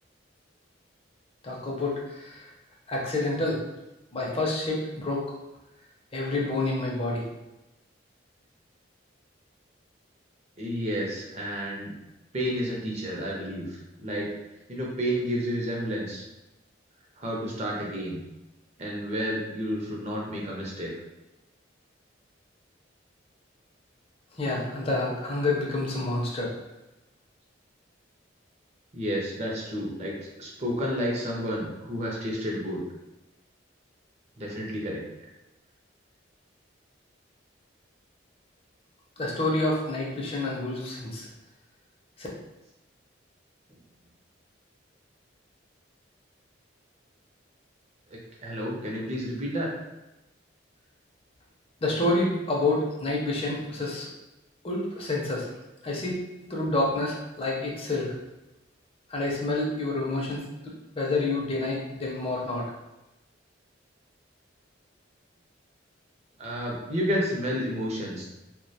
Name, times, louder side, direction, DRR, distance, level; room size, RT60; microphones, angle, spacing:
voice 1, 1.4-2.5 2.9-3.6 4.1-5.2 6.1-7.3 24.4-26.5 39.2-41.3 42.2-42.3 51.8-54.1 54.6-55.5 55.8-56.2 56.5-58.1 59.1-62.7, left 2 dB, 30° left, -3 dB, 0.5 m, -28 dB
voice 2, 10.6-11.9 12.3-14.4 14.7-16.2 17.2-18.2 18.8-20.9 28.9-30.1 30.4-32.8 34.4-35.0 48.1-49.7 66.4-68.3, equal, 35° right, -3 dB, 0.5 m, -31 dB
2.2 x 2.1 x 2.7 m, 0.99 s
head